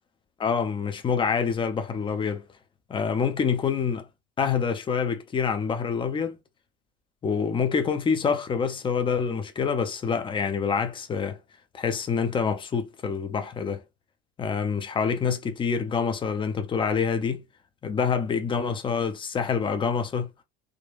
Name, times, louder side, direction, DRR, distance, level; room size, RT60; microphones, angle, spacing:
voice 1, 0.4-2.4 2.9-4.1 4.4-6.4 7.2-11.4 11.7-13.8 14.4-17.4 17.8-20.3, left 6 dB, 15° left, 0.4 m, -26 dB
3.7 x 2.2 x 2.4 m
figure-of-eight pair, 70°, 42 cm